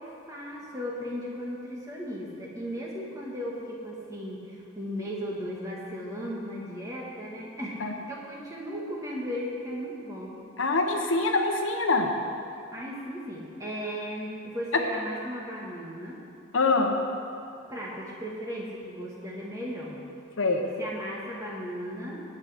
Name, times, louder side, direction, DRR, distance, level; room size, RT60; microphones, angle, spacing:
voice 1, 0.0-7.8 8.1-10.4 12.7-16.2 17.7-20.0 20.6-22.2, equal, 15° right, -3 dB, 1.7 m, -36 dB
voice 2, 10.6-12.1 16.5-17.0 20.4-20.7, left 3 dB, 75° left, 3 dB, 1.1 m, -24 dB
17.5 x 8.1 x 3.6 m, 2.5 s
head